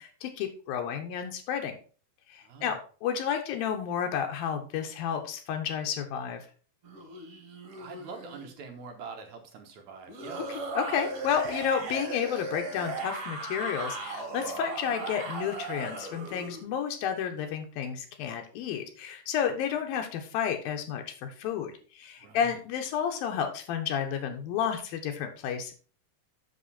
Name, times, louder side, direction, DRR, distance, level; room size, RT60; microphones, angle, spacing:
voice 1, 0.0-1.8 2.3-6.4 10.8-25.7, left 8 dB, 85° left, 5 dB, 2.9 m, -31 dB
voice 2, 2.4-2.7 7.8-10.5 22.2-22.5, right 5 dB, 65° right, 4 dB, 2.2 m, -44 dB
sound 1, 6.8-8.5 10.1-16.6, right 2 dB, 45° right, 2.8 m, -37 dB
8.1 x 6.7 x 4.2 m, 0.39 s
omnidirectional pair, 4.1 m